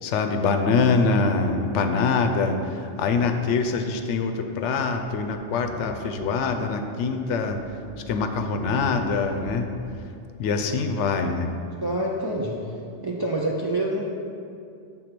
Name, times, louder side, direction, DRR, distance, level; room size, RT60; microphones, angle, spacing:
voice 1, 0.0-7.6 8.1-9.7 10.4-11.5, left 4 dB, 75° left, 5 dB, 0.9 m, -24 dB
sound 1, 2.9-4.3 4.7-4.8 5.0-6.6 7.2-10.4, equal, 55° right, 1.4 m, -44 dB
voice 2, 11.8-12.8 13.0-14.1, right 1 dB, 35° right, -3 dB, 0.4 m, -27 dB
6.6 x 3.8 x 5.8 m, 2.4 s
omnidirectional pair, 1.2 m